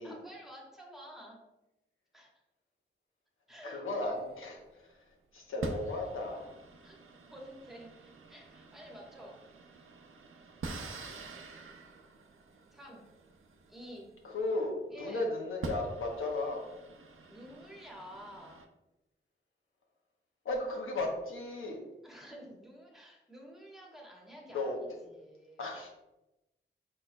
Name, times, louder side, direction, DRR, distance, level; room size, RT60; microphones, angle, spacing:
voice 1, 0.0-1.4 2.1-2.3 3.5-3.8 6.8-7.0 7.2-9.4 12.7-13.0 13.7-14.1 14.9-15.2 17.3-18.6 22.0-25.7, equal, ahead, -2 dB, 1.2 m, -50 dB
voice 2, 3.6-4.9 5.3-6.6 14.2-16.6 20.4-21.8 24.5-24.8 25.6-25.9, left 2 dB, 90° left, 0 dB, 0.9 m, -35 dB
sound 1, 4.2-4.9 5.6-14.7 15.2-15.3 15.6-18.7, right 3 dB, 85° right, 0.5 m, -46 dB
4.7 x 4.3 x 2.2 m, 0.96 s
cardioid pair, 65°, 20 cm